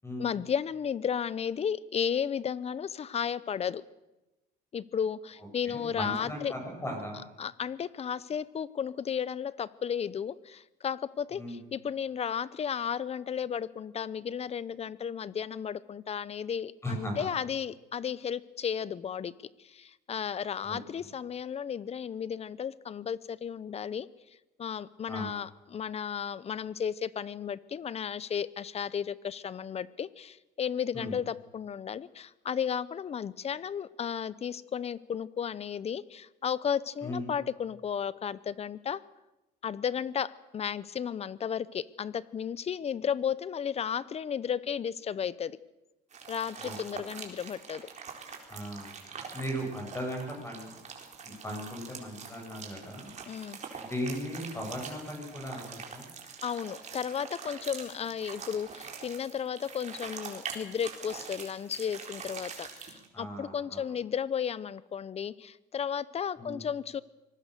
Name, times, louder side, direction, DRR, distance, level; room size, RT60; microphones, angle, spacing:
voice 1, 0.2-3.8 4.7-6.5 7.4-19.3 19.6-24.1 24.6-39.0 39.6-45.6 46.3-47.9 53.3-53.6 56.4-67.0, left 8 dB, 40° left, 19 dB, 0.8 m, -34 dB
voice 2, 5.7-7.2 11.3-11.6 16.8-17.3 20.6-20.8 25.1-25.3 30.9-31.2 37.0-37.3 46.6-46.8 48.5-49.0 49.3-50.8 51.2-53.1 53.8-56.0 63.1-63.9 66.4-66.6, equal, 15° left, 1 dB, 7.8 m, -37 dB
sound 1, 46.1-63.1, right 6 dB, 45° right, 4.0 m, -44 dB
25.0 x 19.0 x 6.8 m, 0.99 s
cardioid pair, 110°, 17 cm